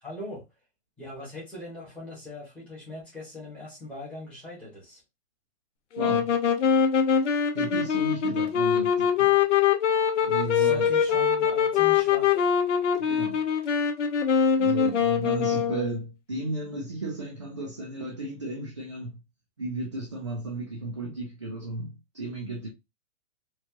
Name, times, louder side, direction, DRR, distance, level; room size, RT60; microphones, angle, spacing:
voice 1, 0.0-0.4 1.0-5.0 10.4-12.4, left 2 dB, 5° left, 1.0 m, -41 dB
sound 1, 5.9-15.9, left 7 dB, 75° left, 0.9 m, -23 dB
voice 2, 6.0-6.3 7.5-9.4 10.2-10.9 13.0-13.5 14.6-19.2 19.6-22.7, right 2 dB, 25° right, 0.4 m, -34 dB
4.4 x 2.4 x 2.8 m
hypercardioid pair, 175°, 36 cm